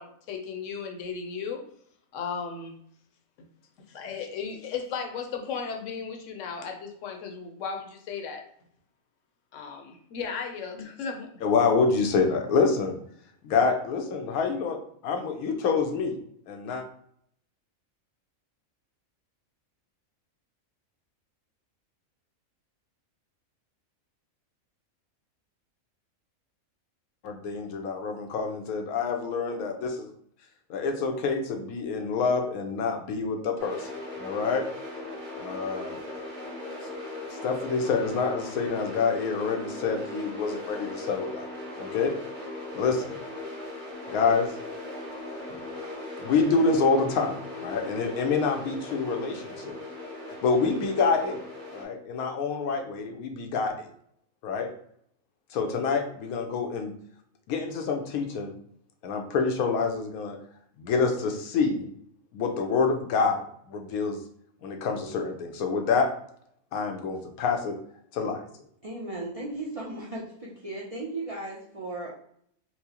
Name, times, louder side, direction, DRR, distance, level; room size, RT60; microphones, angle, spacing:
voice 1, 0.0-1.6 2.1-2.8 3.9-8.4 9.5-11.3, left 6 dB, 65° left, 3 dB, 0.9 m, -35 dB
voice 2, 11.4-13.0 13.4-14.8 15.0-16.2 16.5-16.8 27.2-30.1 30.7-33.9 34.2-34.6 35.3-36.0 37.4-41.5 41.8-42.1 42.7-43.2 44.1-44.5 45.5-45.6 46.2-49.8 50.4-51.4 51.7-53.9 54.4-54.7 55.5-56.9 57.5-58.6 59.0-60.4 60.8-61.9 62.3-64.2 64.6-66.1 66.7-67.8 68.1-68.5, left 4 dB, 90° left, 4 dB, 1.1 m, -27 dB
sound 1, 33.6-51.8, left 2 dB, 35° right, 1.3 m, -38 dB
voice 3, 68.8-72.1, right 2 dB, 60° right, -4 dB, 0.3 m, -36 dB
4.5 x 2.0 x 2.8 m, 0.65 s
omnidirectional pair, 1.5 m